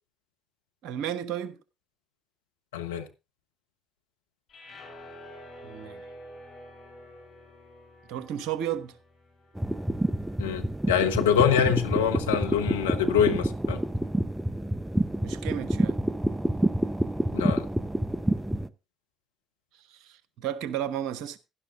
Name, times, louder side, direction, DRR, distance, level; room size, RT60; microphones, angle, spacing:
voice 1, 0.8-1.6 5.6-6.1 8.1-9.0 15.2-16.0 19.7-21.4, right 10 dB, 70° right, 1.0 m, -33 dB
voice 2, 2.7-3.1 10.4-13.8 17.3-17.6, left 8 dB, 90° left, 1.0 m, -25 dB
sound 1, 4.5-10.8, equal, 50° left, 6.5 m, -49 dB
sound 2, 9.6-18.7, right 1 dB, 10° right, 0.8 m, -28 dB
16.0 x 11.5 x 2.6 m
hypercardioid pair, 55°, 0 cm